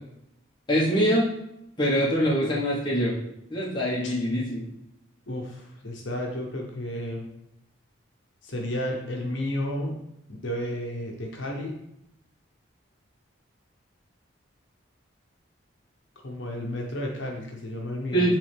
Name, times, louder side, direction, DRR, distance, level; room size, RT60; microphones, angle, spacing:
voice 1, 0.7-1.3 1.8-3.2 3.5-4.6 18.1-18.4, equal, 25° left, -5 dB, 1.3 m, -23 dB
voice 2, 5.3-7.3 8.4-9.9 10.3-11.7 16.2-18.4, left 1 dB, 65° left, 0 dB, 1.0 m, -32 dB
8.2 x 3.4 x 3.4 m, 0.80 s
head